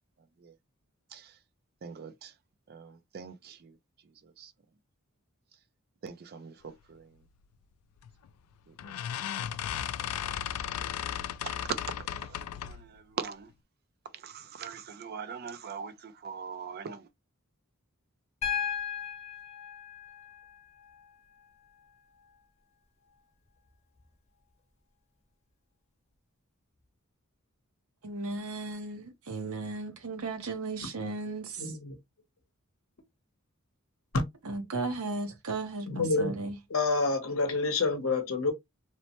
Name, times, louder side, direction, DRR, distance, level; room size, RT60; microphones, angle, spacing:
voice 1, 1.8-2.3 2.7-3.8 4.2-4.5 6.0-7.2 8.7-9.0 9.3-9.6 10.0-10.3 11.4-13.5 14.1-17.1, right 6 dB, 45° right, 0.4 m, -42 dB
sound 1, 8.0-8.3 8.8-12.9, left 10 dB, 85° left, 0.3 m, -35 dB
Piano, 18.4-22.4 24.0-24.1, left 8 dB, 30° left, 0.8 m, -37 dB
voice 2, 28.0-31.8 34.4-36.6, right 3 dB, 75° right, 0.9 m, -35 dB
voice 3, 31.6-32.0 34.1-34.2 35.9-36.4 36.7-38.5, left 3 dB, 65° left, 0.8 m, -28 dB
3.1 x 2.1 x 2.8 m
head